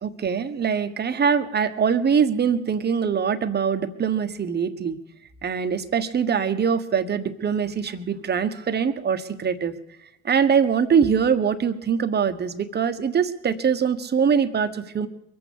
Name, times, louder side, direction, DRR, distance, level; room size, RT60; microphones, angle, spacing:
voice 1, 0.0-5.0 5.4-9.7 10.2-15.1, right 7 dB, 30° right, 9 dB, 1.3 m, -23 dB
22.5 x 8.4 x 7.2 m, 0.83 s
hypercardioid pair, 80°, 33 cm